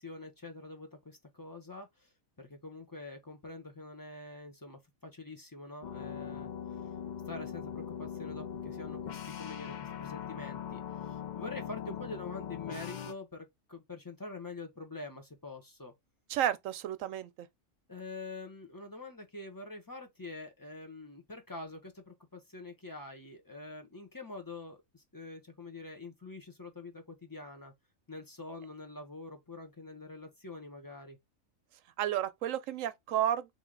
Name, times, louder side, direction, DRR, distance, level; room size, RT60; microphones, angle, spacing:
voice 1, 0.0-1.9 2.4-6.5 7.3-9.7 10.0-15.9 17.9-27.7 28.1-31.2, left 2 dB, 20° left, 0.7 m, -45 dB
sound 1, 5.8-13.1, left 8 dB, 75° left, 0.4 m, -41 dB
voice 2, 16.3-17.5 32.0-33.5, right 11 dB, 75° right, 0.9 m, -32 dB
3.4 x 2.9 x 3.7 m
omnidirectional pair, 1.4 m